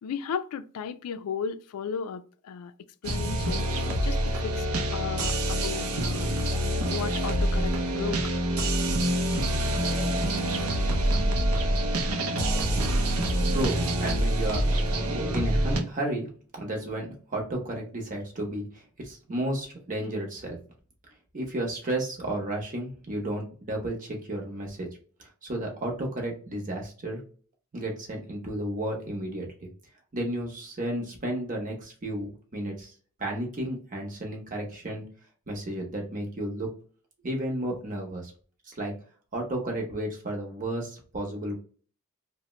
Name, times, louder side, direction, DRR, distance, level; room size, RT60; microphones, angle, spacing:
voice 1, 0.0-2.7 3.0-3.7 4.0-6.3 6.9-8.3 9.5-9.6, left 6 dB, 80° left, 0.3 m, -35 dB
sound 1, 3.0-15.8, right 1 dB, 70° right, 0.6 m, -26 dB
voice 2, 13.2-14.7 15.3-20.6 21.3-24.9 25.4-27.2 27.7-29.7 30.1-32.9 33.2-35.0 35.5-36.7 37.2-38.3 38.7-38.9 39.3-41.5, right 1 dB, 35° right, 0.9 m, -33 dB
2.9 x 2.1 x 3.0 m
head